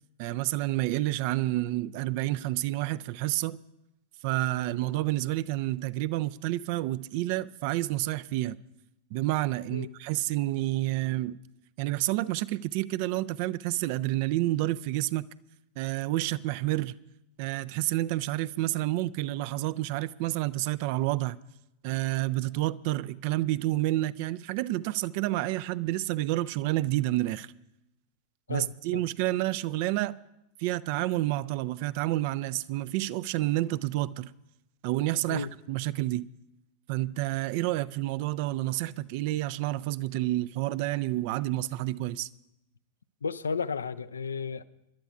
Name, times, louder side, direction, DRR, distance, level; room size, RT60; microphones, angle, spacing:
voice 1, 0.2-3.6 4.2-8.6 9.1-11.4 11.8-15.3 15.8-17.0 17.4-21.4 21.8-27.5 28.5-30.2 30.6-34.3 34.8-36.3 36.9-42.3, right 16 dB, 45° right, 0.4 m, -29 dB
voice 2, 28.5-29.0 35.3-35.5 43.2-44.6, left 5 dB, 75° left, 0.5 m, -33 dB
27.5 x 12.0 x 2.4 m
figure-of-eight pair, 90°, 0 cm